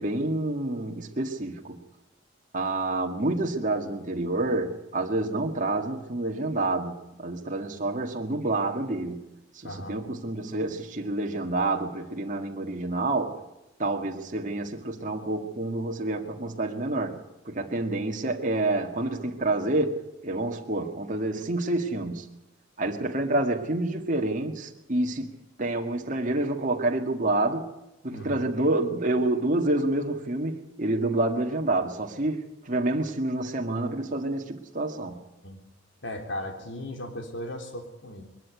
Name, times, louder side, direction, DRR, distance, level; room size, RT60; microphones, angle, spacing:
voice 1, 0.0-1.8 2.5-9.3 9.6-13.4 13.8-22.3 22.8-27.7 28.0-35.2, right 2 dB, 40° right, 2 dB, 2.0 m, -28 dB
voice 2, 9.6-10.0 28.1-28.5 35.4-35.6 36.0-38.2, left 1 dB, 65° left, 4 dB, 3.3 m, -37 dB
21.5 x 13.5 x 9.5 m, 0.93 s
head